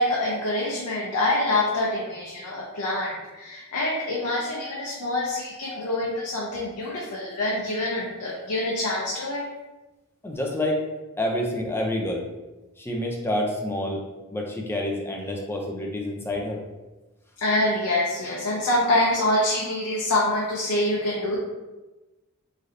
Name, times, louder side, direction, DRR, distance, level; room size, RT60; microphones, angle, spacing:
voice 1, 0.0-9.5 17.4-21.4, left 1 dB, 85° left, -4 dB, 0.6 m, -25 dB
voice 2, 10.2-10.8 11.2-12.3 12.8-14.0 14.3-16.6, left 1 dB, 10° left, 0 dB, 0.4 m, -28 dB
3.1 x 2.6 x 2.5 m, 1.1 s
head